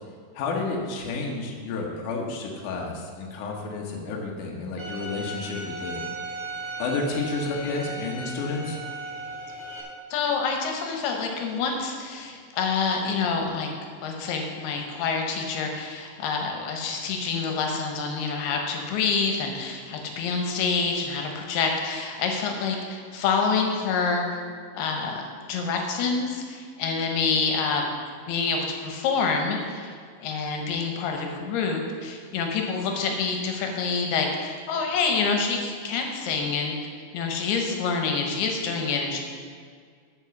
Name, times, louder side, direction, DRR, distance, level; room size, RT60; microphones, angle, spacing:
voice 1, 0.3-6.0 6.8-8.8, left 3 dB, 65° left, -1 dB, 2.4 m, -31 dB
Bowed string instrument, 4.8-9.8, right 1 dB, 15° right, 1.4 m, -36 dB
voice 2, 10.1-13.7 14.0-24.2 24.7-27.9 28.3-29.9 30.2-36.7 37.1-39.2, left 5 dB, 80° left, 2 dB, 3.0 m, -27 dB
9.8 x 5.3 x 7.0 m, 2.1 s
omnidirectional pair, 4.5 m